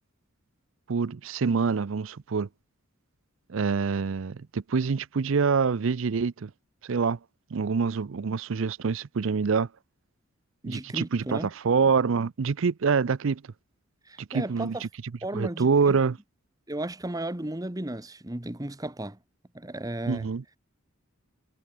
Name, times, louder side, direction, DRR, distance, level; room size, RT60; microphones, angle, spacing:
voice 1, 0.9-2.5 3.5-6.5 6.8-7.2 7.5-9.7 10.6-13.4 14.3-14.9 15.3-16.2 20.1-20.4, right 5 dB, 65° right, 0.5 m, -26 dB
voice 2, 10.6-11.5 14.1-14.8 15.2-16.0 16.7-19.2 19.5-20.3, right 1 dB, 15° right, 1.1 m, -34 dB
head